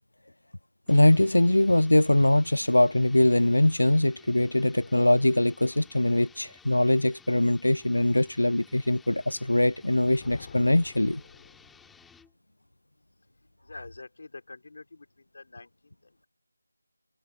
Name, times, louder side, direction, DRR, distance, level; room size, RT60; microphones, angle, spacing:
voice 1, 0.9-11.2, left 1 dB, 85° left, 0.3 m, -22 dB
sound 1, 0.9-12.3, left 5 dB, 5° left, 2.5 m, -56 dB
Thunder, 9.7-12.3, left 5 dB, 35° left, 2.0 m, -49 dB
voice 2, 13.7-16.3, left 3 dB, 50° left, 4.1 m, -47 dB
figure-of-eight pair, 165°, 0 cm